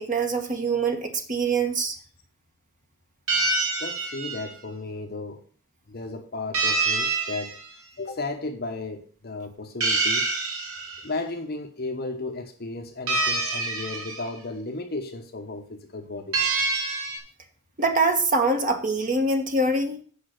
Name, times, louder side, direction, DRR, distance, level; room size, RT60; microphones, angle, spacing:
voice 1, 0.0-1.9 17.8-20.0, right 3 dB, 40° right, 5 dB, 1.5 m, -24 dB
sound 1, 3.3-4.5 6.5-7.7 9.8-11.1 13.1-14.3 16.3-17.2, right 3 dB, 80° right, 2.7 m, -26 dB
voice 2, 3.8-5.4 5.9-7.6 8.0-10.4 11.0-16.4, left 2 dB, 45° left, 4 dB, 1.1 m, -34 dB
8.5 x 5.4 x 6.5 m, 0.43 s
head